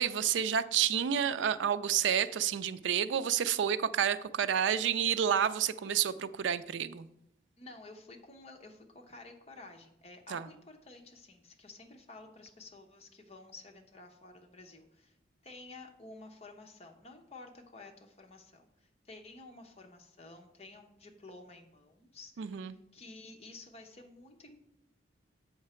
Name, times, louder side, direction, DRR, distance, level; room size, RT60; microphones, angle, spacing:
voice 1, 0.0-7.1 10.3-10.5 22.4-22.7, right 8 dB, 75° right, 0.4 m, -29 dB
voice 2, 7.6-15.2 15.4-24.6, left 2 dB, 35° left, 0.9 m, -52 dB
7.5 x 5.8 x 4.3 m
head